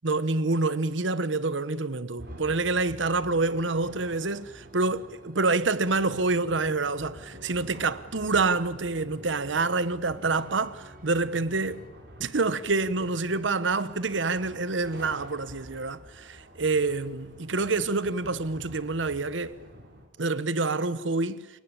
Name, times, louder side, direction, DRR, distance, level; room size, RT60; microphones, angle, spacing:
voice 1, 0.0-5.0 5.4-11.9 12.2-19.6 20.2-21.5, right 3 dB, 90° right, 1.1 m, -27 dB
sound 1, 2.2-20.1, equal, 70° right, 5.3 m, -48 dB
sound 2, 2.3-11.9, equal, 45° right, 2.1 m, -52 dB
29.0 x 18.0 x 8.9 m
head